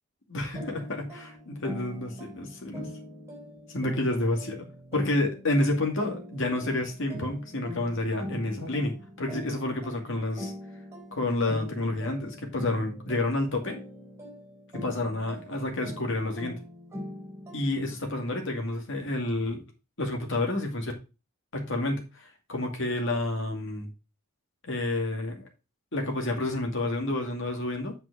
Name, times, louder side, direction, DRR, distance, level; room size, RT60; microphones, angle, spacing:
voice 1, 0.3-2.9 3.7-4.7 4.9-10.5 11.1-13.8 14.7-16.6 17.5-19.6 20.0-20.9 21.5-23.9 24.7-25.4 25.9-27.9, left 2 dB, 60° left, 2 dB, 2.3 m, -29 dB
sound 1, 0.5-18.0, equal, 15° right, 3.6 m, -42 dB
7.8 x 5.7 x 4.9 m, 0.29 s
head